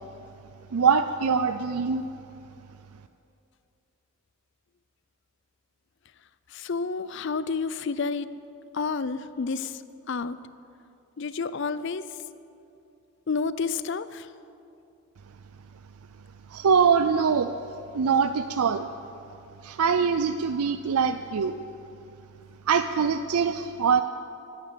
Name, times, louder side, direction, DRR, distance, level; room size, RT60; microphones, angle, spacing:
voice 1, 0.7-2.0 16.5-17.5 17.9-18.9 19.6-21.6 22.7-24.0, right 6 dB, 85° right, 10 dB, 0.5 m, -23 dB
voice 2, 6.5-8.3 8.7-9.8 10.1-10.4 11.2-12.1 13.3-14.3, left 4 dB, 55° left, 15 dB, 0.5 m, -30 dB
12.0 x 11.0 x 8.5 m, 2.7 s
head